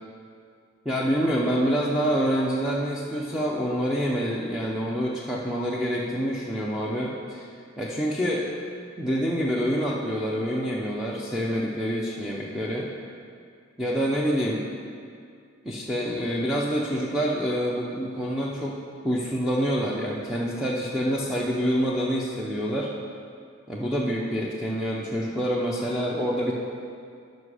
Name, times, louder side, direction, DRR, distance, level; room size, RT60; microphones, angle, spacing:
voice 1, 0.8-7.5 7.8-8.5 9.0-12.9 13.8-14.6 15.6-18.8 19.0-22.9 23.7-26.5, equal, 5° right, -5 dB, 0.7 m, -26 dB
13.0 x 5.3 x 4.9 m, 2.3 s
head